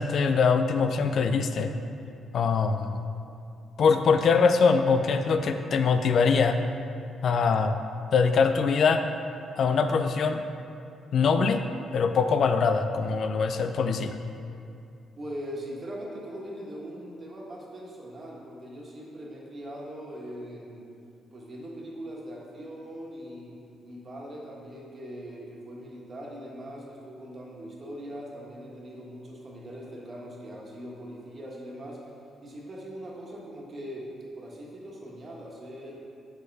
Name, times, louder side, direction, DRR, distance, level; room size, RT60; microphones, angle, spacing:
voice 1, 0.0-1.7 2.3-3.0 3.8-6.6 7.2-7.8 8.1-9.0 9.6-10.4 11.1-11.6 11.9-14.2, left 5 dB, 60° left, 8 dB, 0.4 m, -23 dB
voice 2, 15.1-20.8 21.3-23.6 23.8-32.1 32.4-36.0, equal, 40° right, -3 dB, 1.6 m, -41 dB
6.7 x 5.2 x 4.7 m, 2.6 s
cardioid pair, 90°, 0 cm